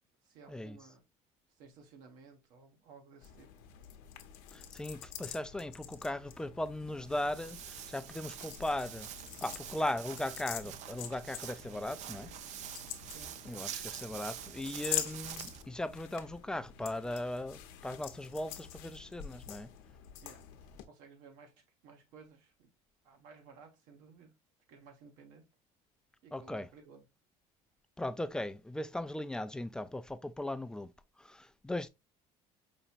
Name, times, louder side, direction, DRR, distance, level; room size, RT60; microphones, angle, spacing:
voice 1, 0.2-1.0 1.6-3.5 13.1-13.6 20.2-20.4 20.9-21.5 21.8-22.7 23.0-24.3 24.7-25.5 26.2-27.0, right 5 dB, 80° right, 1.3 m, -56 dB
sound 1, 3.2-20.8, left 11 dB, 85° left, 0.7 m, -45 dB
voice 2, 4.5-9.1 9.4-12.3 13.5-19.7 26.3-26.7 28.0-30.9 31.2-31.9, left 1 dB, 5° left, 0.3 m, -38 dB
Walk footsteps, 6.9-15.6, right 10 dB, 60° right, 0.5 m, -46 dB
5.3 x 2.8 x 2.4 m
cardioid pair, 125°, 14 cm